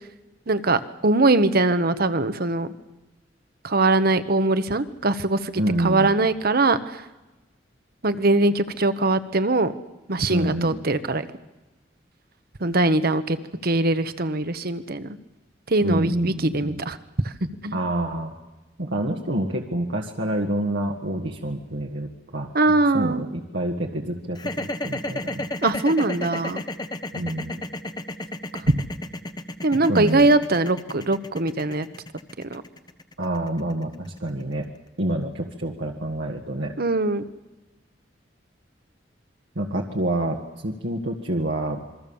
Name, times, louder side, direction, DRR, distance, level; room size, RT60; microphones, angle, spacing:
voice 1, 0.5-2.7 3.6-6.8 8.0-9.7 10.1-11.2 12.6-13.4 13.6-15.1 15.7-17.0 17.6-17.8 22.5-23.2 25.6-26.6 28.7-28.8 29.6-31.9 32.5-32.6 36.8-37.2, right 2 dB, 55° right, 11 dB, 1.2 m, -21 dB
voice 2, 5.6-6.1 10.3-10.8 15.8-16.8 17.7-18.3 18.8-22.5 22.9-25.5 27.1-27.6 29.9-30.3 33.2-34.7 35.0-36.7 39.6-40.4 40.6-41.8, right 1 dB, 70° right, -1 dB, 1.8 m, -27 dB
sound 1, 24.3-34.5, left 1 dB, 25° left, 1.0 m, -32 dB
27.5 x 22.5 x 7.1 m, 1.1 s
head